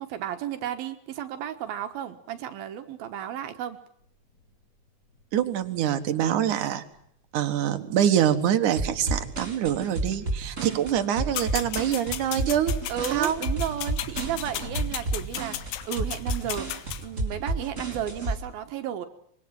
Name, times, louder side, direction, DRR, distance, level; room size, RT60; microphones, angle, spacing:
voice 1, 0.0-3.8 10.6-10.9 12.9-15.6 15.9-16.7 17.0-19.1, right 10 dB, 75° right, 7 dB, 3.2 m, -33 dB
sound 1, 4.0-9.4 9.8-15.9, equal, 20° left, 6.1 m, -47 dB
voice 2, 5.3-6.8 7.3-12.8 13.1-13.4, right 10 dB, 60° right, 10 dB, 2.8 m, -25 dB
sound 2, 8.8-18.4, right 2 dB, 20° right, 4.9 m, -31 dB
sound 3, 11.3-17.0, left 12 dB, 75° left, 2.8 m, -35 dB
25.5 x 23.0 x 7.8 m, 0.69 s
omnidirectional pair, 4.3 m